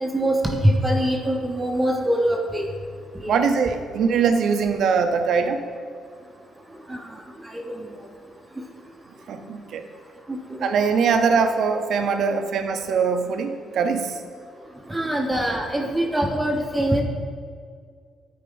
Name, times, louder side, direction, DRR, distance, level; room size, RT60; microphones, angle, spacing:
voice 1, 0.0-2.6 3.2-3.4 6.9-7.0 7.4-7.9 10.3-10.4 14.9-17.0, right 1 dB, 15° right, 1 dB, 0.7 m, -23 dB
voice 2, 3.3-5.6 9.3-9.8 10.6-14.2, right 5 dB, 70° right, 7 dB, 0.6 m, -22 dB
10.0 x 4.3 x 3.9 m, 2.1 s
cardioid pair, 90°, 0 cm